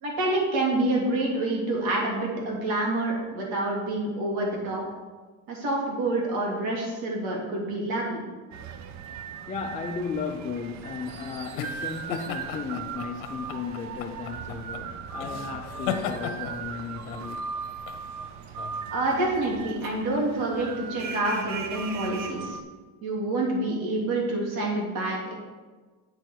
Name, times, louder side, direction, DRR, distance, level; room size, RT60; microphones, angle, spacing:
voice 1, 0.0-4.8 5.5-8.2 18.9-22.6 23.0-25.3, right 2 dB, 70° right, 3.0 m, -27 dB
sound 1, 8.5-22.6, right 6 dB, 50° right, 0.7 m, -38 dB
voice 2, 9.5-17.4, left 5 dB, 20° left, 0.5 m, -35 dB
sound 2, 10.5-19.7, left 8 dB, 85° left, 0.9 m, -37 dB
8.9 x 6.3 x 4.7 m
cardioid pair, 145°, 38 cm